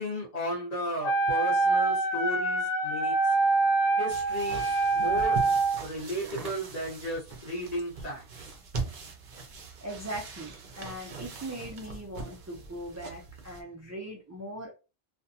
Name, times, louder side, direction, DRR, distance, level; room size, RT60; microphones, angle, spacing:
voice 1, 0.0-3.1 4.0-4.6 4.9-5.4 5.8-8.2, equal, 40° left, 1.1 m, -34 dB
Wind instrument woodwind instrument, 1.0-5.8, right 3 dB, 55° left, 0.7 m, -25 dB
sound 1, 4.1-13.6, right 3 dB, 55° right, 0.7 m, -41 dB
voice 2, 9.8-14.7, right 1 dB, 25° right, 0.4 m, -40 dB
2.5 x 2.2 x 2.7 m
omnidirectional pair, 1.0 m